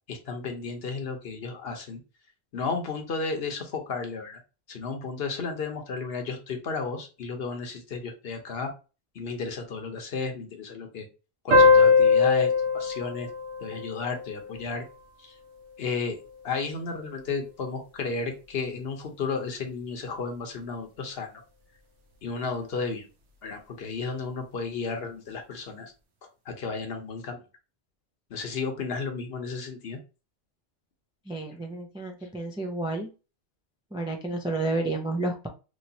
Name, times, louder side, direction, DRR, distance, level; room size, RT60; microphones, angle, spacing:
voice 1, 0.1-2.0 2.5-4.4 4.7-8.7 9.1-11.1 11.4-13.3 13.6-14.8 15.2-15.3 15.8-16.2 16.4-21.4 22.2-23.1 23.4-25.9 26.5-27.4 28.3-30.0, left 4 dB, 65° left, 4 dB, 1.0 m, -33 dB
sound 1, 11.5-14.7, left 4 dB, 85° right, 1.1 m, -21 dB
voice 2, 31.3-33.1 33.9-35.5, right 2 dB, 10° right, 2 dB, 0.3 m, -30 dB
3.0 x 3.0 x 2.7 m, 0.32 s
omnidirectional pair, 1.1 m